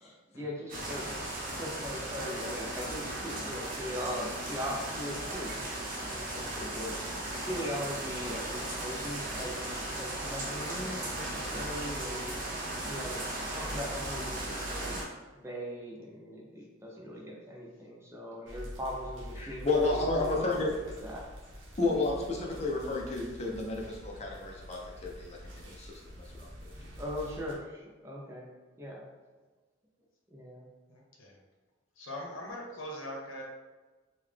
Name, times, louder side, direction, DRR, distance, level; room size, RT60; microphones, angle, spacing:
voice 1, 0.0-1.1 1.5-5.7 6.0-12.4 12.8-13.2 13.5-15.0 15.4-20.5 21.0-21.3 26.4-26.5 27.0-28.5 28.8-29.1 30.3-30.7, equal, 15° right, -2 dB, 0.5 m, -40 dB
sound 1, 0.7-15.0, right 1 dB, 45° right, 0.7 m, -36 dB
voice 2, 0.8-1.2 30.9-31.3 32.0-33.4, left 1 dB, 85° left, -2 dB, 0.8 m, -42 dB
sound 2, 18.5-27.5, equal, 85° right, 0.8 m, -46 dB
voice 3, 19.4-20.7 21.8-26.9, left 3 dB, 35° left, -2 dB, 0.6 m, -32 dB
3.7 x 2.3 x 3.3 m, 1.3 s
head